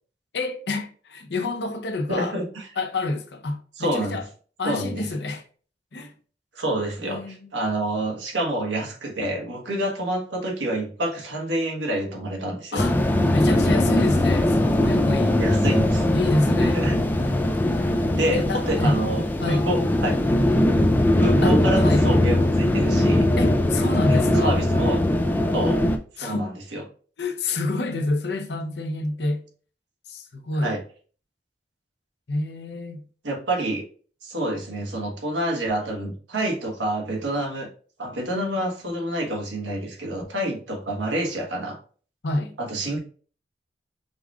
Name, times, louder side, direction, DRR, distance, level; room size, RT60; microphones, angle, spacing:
voice 1, 0.3-2.3 2.8-4.3 4.6-5.4 5.9-6.1 7.0-7.5 12.7-13.0 13.3-15.4 16.1-16.8 18.3-19.0 19.4-19.7 21.4-22.1 23.4-24.6 26.2-26.5 27.2-29.4 30.1-30.8 32.3-33.0 42.2-42.5, left 2 dB, 65° left, 0.7 m, -28 dB
voice 2, 2.1-2.7 3.8-4.2 4.6-5.1 6.5-12.8 15.3-16.1 16.6-17.0 18.1-20.2 21.2-23.2 24.1-25.0 25.5-25.8 26.2-26.8 30.6-30.8 33.2-33.8 34.2-37.7 38.0-41.8 42.6-43.0, right 1 dB, 85° right, 1.3 m, -28 dB
sound 1, 12.8-26.0, left 1 dB, 10° left, 0.3 m, -20 dB
5.2 x 3.6 x 2.4 m
head